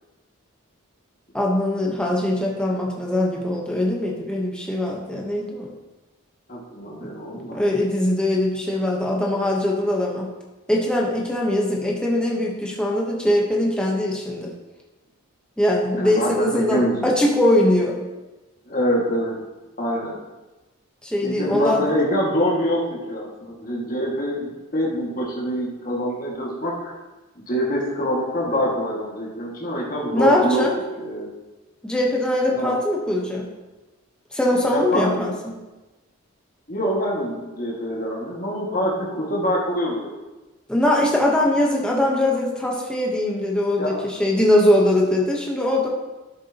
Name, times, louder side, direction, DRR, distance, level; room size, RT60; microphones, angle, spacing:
voice 1, 1.3-5.7 7.0-7.1 7.5-10.3 10.7-14.5 15.6-18.0 21.0-21.9 30.1-30.7 31.8-33.5 34.3-35.5 40.7-45.9, left 1 dB, 5° left, -2 dB, 1.1 m, -21 dB
voice 2, 6.5-7.6 15.9-17.1 18.7-19.4 19.8-20.2 21.2-26.9 27.5-30.7 31.0-31.3 32.5-32.7 34.7-35.1 36.7-40.1 43.8-44.0, equal, 40° left, -4 dB, 2.0 m, -25 dB
12.5 x 7.0 x 3.0 m, 1.1 s
head